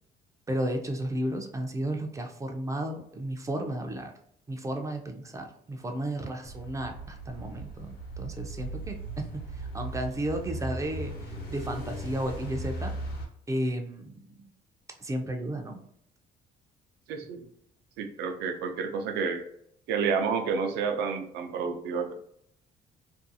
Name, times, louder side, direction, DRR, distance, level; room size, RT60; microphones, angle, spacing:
voice 1, 0.5-4.1 4.5-12.9 13.5-14.3 15.0-15.8, right 1 dB, 20° right, 3 dB, 0.4 m, -33 dB
sound 1, 6.5-13.3, right 1 dB, 70° left, 0.9 m, -38 dB
voice 2, 17.1-17.4 18.0-19.4 19.9-22.1, right 5 dB, 85° right, 6 dB, 0.5 m, -30 dB
2.5 x 2.3 x 2.6 m, 0.70 s
cardioid pair, 110°, 17 cm